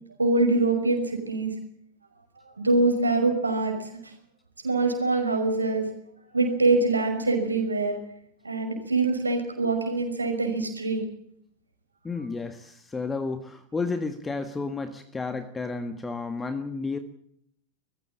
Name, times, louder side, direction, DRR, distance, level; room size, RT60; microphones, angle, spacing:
voice 1, 0.2-1.5 2.6-4.1 4.6-5.9 6.3-8.0 8.4-11.0, right 3 dB, 80° right, 5 dB, 5.8 m, -24 dB
voice 2, 12.0-17.0, left 4 dB, 15° left, 9 dB, 1.7 m, -32 dB
21.5 x 15.5 x 8.9 m, 0.71 s
figure-of-eight pair, 90°, 0 cm